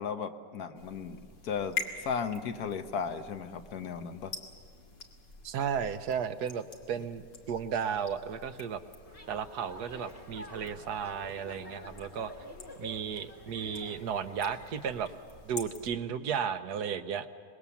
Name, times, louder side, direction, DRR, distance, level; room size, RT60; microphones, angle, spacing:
voice 1, 0.0-4.3, left 6 dB, 60° left, 9 dB, 1.5 m, -36 dB
sound 1, 0.7-16.0, left 5 dB, 85° left, 2.8 m, -46 dB
voice 2, 5.4-8.8 9.3-12.3 12.8-15.1 15.4-17.3, right 7 dB, 70° right, 11 dB, 1.4 m, -34 dB
sound 2, 9.0-15.1, left 1 dB, 20° left, 1.7 m, -49 dB
25.0 x 21.5 x 7.1 m, 2.3 s
omnidirectional pair, 1.9 m